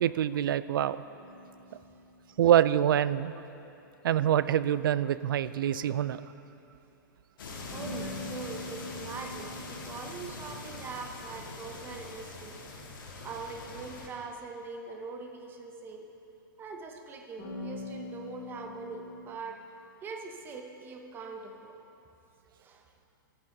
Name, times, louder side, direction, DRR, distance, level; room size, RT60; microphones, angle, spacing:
voice 1, 0.0-1.0 2.4-3.3 4.0-6.2, right 10 dB, 80° right, 16 dB, 0.4 m, -25 dB
sound 1, 1.1-3.4 7.7-12.5 17.4-19.3, left 1 dB, 35° left, 1.7 m, -44 dB
sound 2, 7.4-14.1, left 3 dB, 75° left, 1.7 m, -43 dB
voice 2, 7.7-12.6 12.9-16.1 16.6-19.6 20.0-21.7 22.6-22.8, right 4 dB, 20° right, 3 dB, 0.9 m, -42 dB
13.5 x 8.9 x 3.9 m, 2.9 s
hypercardioid pair, 145°, 11 cm